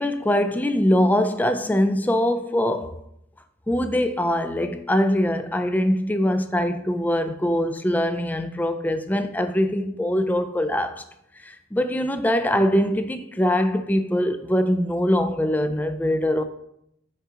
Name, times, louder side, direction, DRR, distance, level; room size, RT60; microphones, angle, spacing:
voice 1, 0.0-3.0 3.7-11.0 11.4-16.4, left 1 dB, 10° left, 0.3 m, -22 dB
5.4 x 5.0 x 3.6 m
head